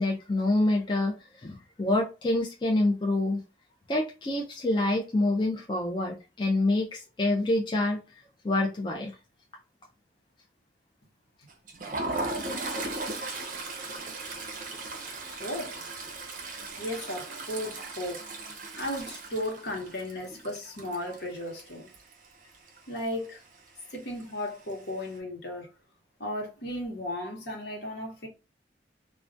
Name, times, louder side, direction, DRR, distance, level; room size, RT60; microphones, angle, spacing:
voice 1, 0.0-3.4 3.9-8.0 8.4-9.1, left 2 dB, 25° left, 0.3 m, -27 dB
Toilet flush, 11.5-22.3 22.5-22.8 23.1-23.3 24.2-24.7, right 2 dB, 45° right, 0.5 m, -37 dB
voice 2, 15.4-15.7 16.8-18.3 18.8-21.9 22.9-23.4 23.9-25.7 26.2-28.3, left 1 dB, 65° left, 1.0 m, -35 dB
2.3 x 2.1 x 2.5 m
head